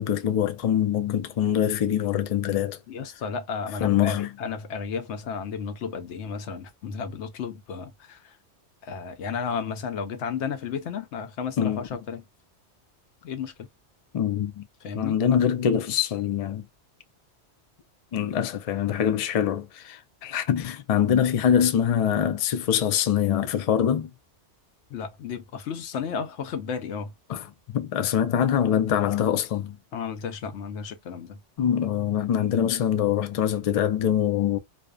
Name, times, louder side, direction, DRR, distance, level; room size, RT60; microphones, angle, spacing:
voice 1, 0.0-2.8 3.8-4.3 11.6-11.8 14.1-14.6 15.0-16.6 18.1-24.1 27.3-27.4 27.7-29.8 31.6-34.6, left 9 dB, 65° left, 0.3 m, -24 dB
voice 2, 2.9-8.3 8.8-12.2 13.2-13.7 14.8-15.2 24.9-27.1 29.9-31.4, left 6 dB, 80° left, 0.9 m, -33 dB
2.6 x 2.1 x 2.2 m
omnidirectional pair, 1.2 m